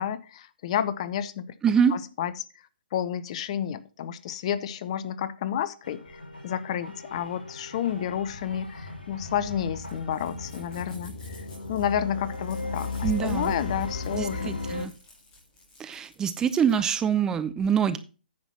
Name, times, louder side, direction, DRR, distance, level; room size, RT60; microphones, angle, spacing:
voice 1, 0.0-1.4 1.9-2.3 2.9-6.0 6.4-11.4 11.7-14.6, left 9 dB, 40° left, 0.7 m, -30 dB
voice 2, 1.6-1.9 13.0-13.5 14.1-14.9 15.8-18.0, right 7 dB, 10° right, 0.5 m, -25 dB
sound 1, 5.8-11.0, left 1 dB, 80° left, 4.8 m, -44 dB
sound 2, 6.0-16.9, left 2 dB, 15° left, 3.6 m, -56 dB
sound 3, 7.6-14.9, left 3 dB, 65° left, 2.4 m, -35 dB
9.5 x 6.1 x 5.7 m
figure-of-eight pair, 130°, 5 cm